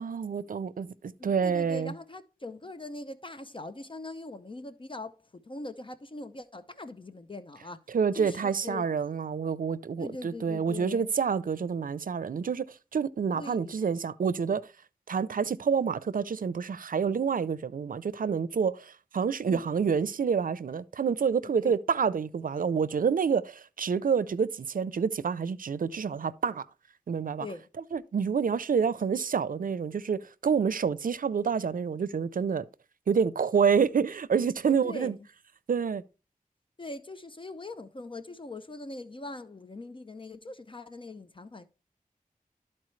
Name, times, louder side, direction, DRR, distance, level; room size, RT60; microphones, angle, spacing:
voice 1, 0.0-1.9 7.9-12.6 12.9-14.7 15.1-26.7 27.1-27.5 27.9-32.6 33.1-35.1 35.7-36.0, right 6 dB, 75° right, 0.5 m, -28 dB
voice 2, 1.2-7.8 8.1-8.9 10.0-11.1 13.3-13.9 19.5-19.6 21.7-21.8 27.4-27.6 34.7-35.1 36.8-41.7, left 2 dB, 35° left, 0.6 m, -41 dB
12.5 x 4.3 x 3.2 m
wide cardioid pair, 60°, 15 cm